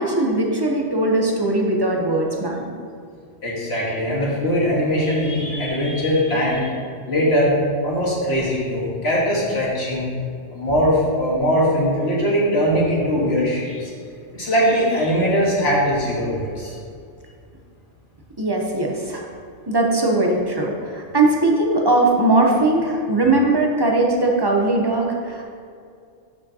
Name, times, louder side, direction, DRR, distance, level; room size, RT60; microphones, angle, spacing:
voice 1, 0.0-2.6 18.4-19.3 19.7-25.4, right 2 dB, 25° right, 0 dB, 0.7 m, -19 dB
voice 2, 3.4-6.7 7.1-7.6 7.8-10.1 10.5-13.9 14.3-16.7, equal, 55° left, -5 dB, 1.8 m, -20 dB
11.0 x 4.9 x 2.8 m, 2.3 s
omnidirectional pair, 1.3 m